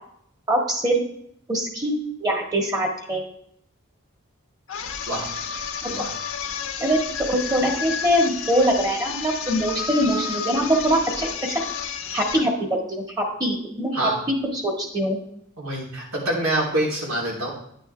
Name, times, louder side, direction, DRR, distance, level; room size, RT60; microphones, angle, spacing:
voice 1, 0.5-1.0 1.5-3.2 5.8-5.9 6.8-11.7 12.1-14.0 14.5-15.2, equal, 20° right, 1 dB, 1.6 m, -23 dB
sound 1, 4.7-12.5, left 6 dB, 75° left, 1.2 m, -31 dB
voice 2, 15.6-17.5, right 1 dB, 75° right, -3 dB, 3.3 m, -25 dB
10.0 x 9.1 x 3.3 m, 0.70 s
head